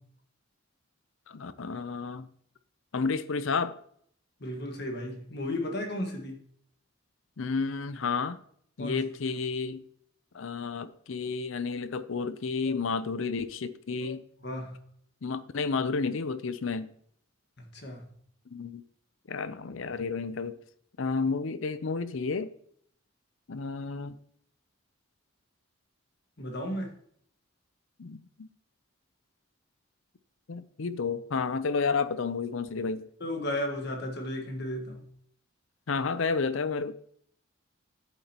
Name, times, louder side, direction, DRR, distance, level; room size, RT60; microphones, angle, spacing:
voice 1, 1.3-2.3 2.9-3.7 7.4-8.4 8.8-9.8 10.3-14.2 15.2-16.9 18.5-18.8 19.3-20.6 21.0-22.5 23.5-24.2 28.0-28.5 30.5-33.1 35.9-36.9, left 4 dB, 65° left, 0.6 m, -31 dB
voice 2, 4.4-6.4 8.8-9.0 14.4-14.8 17.6-18.1 26.4-27.0 33.2-35.0, left 1 dB, 50° left, 1.6 m, -34 dB
10.5 x 8.5 x 2.9 m
head